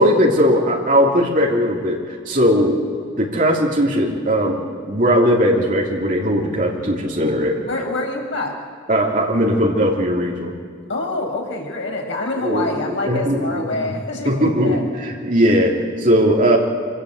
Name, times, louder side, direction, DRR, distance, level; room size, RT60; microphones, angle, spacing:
voice 1, 0.0-2.8 3.2-7.6 8.9-10.5 12.4-13.9 14.2-16.6, equal, 45° right, -1 dB, 3.2 m, -18 dB
voice 2, 7.7-8.6 10.9-14.8, left 2 dB, 80° left, 0 dB, 5.2 m, -26 dB
25.5 x 17.0 x 8.1 m, 2.3 s
head